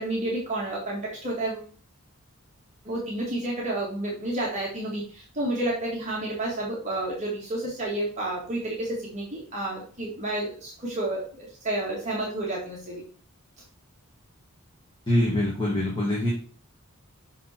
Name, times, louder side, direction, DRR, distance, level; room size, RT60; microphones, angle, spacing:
voice 1, 0.0-1.7 2.8-13.0, right 1 dB, 35° right, -4 dB, 2.1 m, -30 dB
voice 2, 15.1-16.3, left 1 dB, 20° left, -4 dB, 1.9 m, -24 dB
6.4 x 6.1 x 4.4 m, 0.40 s
head